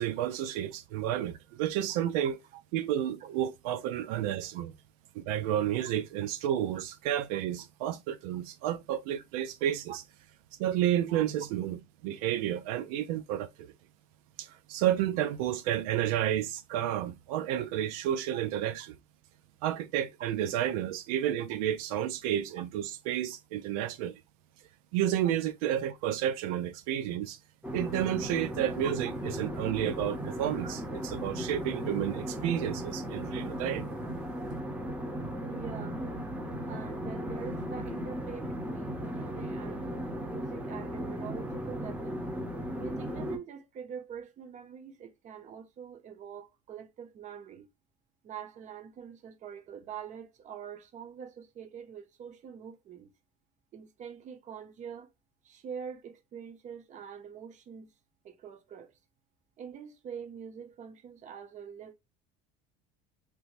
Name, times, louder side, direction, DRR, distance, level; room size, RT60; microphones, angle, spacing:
voice 1, 0.0-2.3 2.7-4.7 5.1-10.0 10.6-11.8 12.0-13.7 14.4-19.0 19.6-24.1 24.9-27.4 27.7-29.1 29.4-33.9, right 11 dB, 90° right, 0.4 m, -31 dB
sound 1, 27.6-43.4, equal, 5° right, 0.8 m, -36 dB
voice 2, 35.4-36.1 36.7-39.9 40.2-42.2 42.8-47.7 48.2-53.1 53.7-55.1 55.4-57.9 58.2-58.9 59.6-61.9, right 7 dB, 45° right, 0.8 m, -44 dB
3.4 x 2.9 x 2.5 m
cardioid pair, 120°, 18 cm